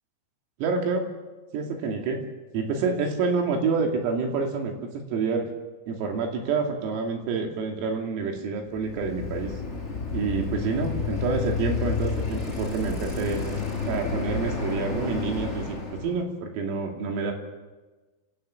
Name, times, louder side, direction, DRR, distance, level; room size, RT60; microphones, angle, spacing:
voice 1, 0.6-1.1 1.5-2.2 2.5-4.8 5.1-5.5 5.9-9.5 10.1-13.4 13.9-17.3, right 4 dB, 80° right, 3 dB, 5.3 m, -28 dB
Bicycle, 8.6-16.2, left 4 dB, 15° left, 7.6 m, -30 dB
29.0 x 16.5 x 7.1 m, 1.2 s
omnidirectional pair, 5.9 m